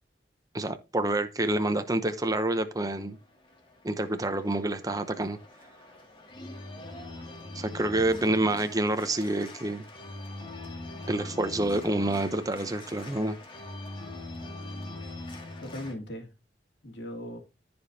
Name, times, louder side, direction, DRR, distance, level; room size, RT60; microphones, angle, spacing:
voice 1, 0.5-3.2 3.8-5.4 7.5-9.9 11.1-13.4, right 1 dB, 20° right, 0.8 m, -28 dB
Organ, 2.9-15.9, left 2 dB, 30° left, 2.2 m, -43 dB
voice 2, 15.0-16.3 16.8-17.4, left 1 dB, 80° left, 2.6 m, -40 dB
14.5 x 5.2 x 2.8 m
head